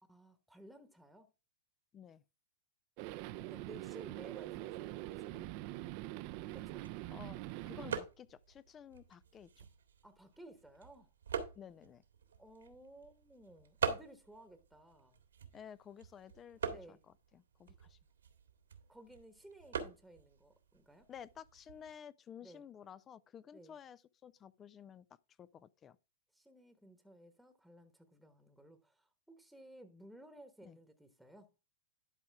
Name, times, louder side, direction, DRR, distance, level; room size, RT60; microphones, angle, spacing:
voice 1, 0.0-1.3 3.3-5.5 6.5-6.8 10.0-11.1 12.4-15.2 16.7-17.0 18.9-21.1 22.4-22.6 23.5-23.8 26.3-31.5, right 1 dB, ahead, 1.2 m, -57 dB
sound 1, 3.0-8.0, right 17 dB, 50° right, 0.5 m, -44 dB
sound 2, 6.4-21.9, right 6 dB, 85° right, 1.8 m, -45 dB
voice 2, 7.1-7.4 7.7-9.6 11.6-12.0 15.5-18.0 21.1-25.1 25.4-26.0 30.6-30.8, left 8 dB, 25° left, 0.4 m, -53 dB
11.5 x 4.8 x 3.5 m
hypercardioid pair, 115°, 0 cm